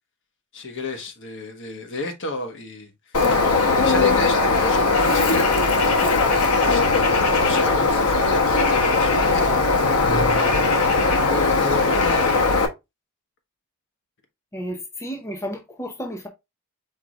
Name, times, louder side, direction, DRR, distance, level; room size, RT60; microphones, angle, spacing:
voice 1, 0.5-2.9 3.8-9.6 10.1-10.6 11.2-12.3, left 3 dB, 55° left, 1.3 m, -31 dB
Bird, 3.1-12.7, left 3 dB, 90° left, 1.0 m, -19 dB
voice 2, 14.5-16.3, equal, 15° left, 0.7 m, -32 dB
4.7 x 4.6 x 2.4 m
head